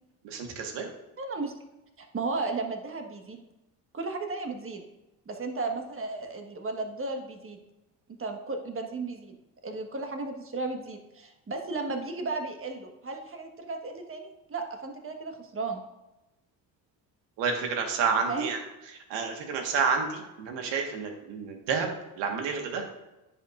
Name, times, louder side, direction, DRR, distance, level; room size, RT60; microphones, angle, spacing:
voice 1, 0.2-0.9 17.4-18.6 19.1-21.9 22.2-22.8, right 5 dB, 75° right, 3 dB, 1.5 m, -29 dB
voice 2, 1.2-1.5 2.0-3.4 3.9-4.8 5.3-7.6 8.1-9.3 9.6-15.8 18.1-18.5, right 3 dB, 30° right, 4 dB, 1.4 m, -34 dB
10.0 x 5.6 x 2.5 m, 0.98 s
supercardioid pair, 70°, 44 cm